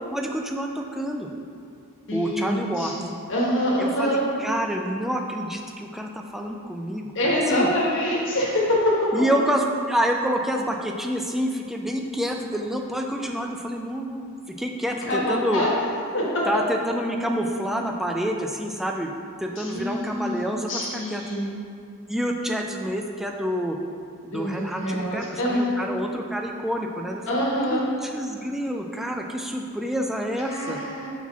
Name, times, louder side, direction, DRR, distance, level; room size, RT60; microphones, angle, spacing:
voice 1, 0.1-1.3 2.1-2.9 3.8-7.1 7.5-7.7 9.1-14.3 14.6-15.6 16.5-19.1 19.4-20.8 21.1-21.2 22.1-23.8 24.3-27.4 27.7-30.8, equal, ahead, 2 dB, 0.3 m, -28 dB
voice 2, 2.1-4.2 7.1-8.9 15.0-15.7 16.1-16.2 19.6-21.5 24.3-25.8 27.3-27.8 30.5-31.1, equal, 55° left, -5 dB, 1.4 m, -25 dB
4.3 x 4.1 x 5.7 m, 2.4 s
head